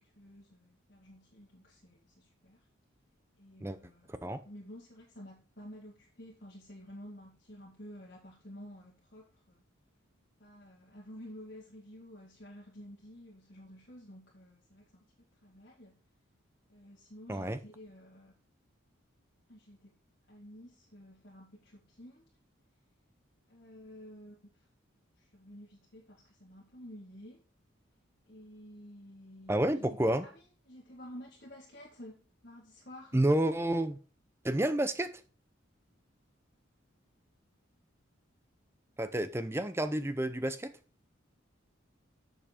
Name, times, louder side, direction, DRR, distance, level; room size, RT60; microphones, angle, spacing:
voice 1, 0.0-2.7 3.4-9.6 10.4-15.0 15.4-16.0 16.7-18.3 19.5-20.0 20.3-22.2 23.5-24.7 25.2-27.4 28.3-33.2, equal, 50° left, 1.8 m, -51 dB
voice 2, 29.5-30.3 33.1-34.0 34.4-35.2 39.0-40.7, right 1 dB, 10° right, 0.6 m, -30 dB
7.8 x 6.9 x 4.3 m
head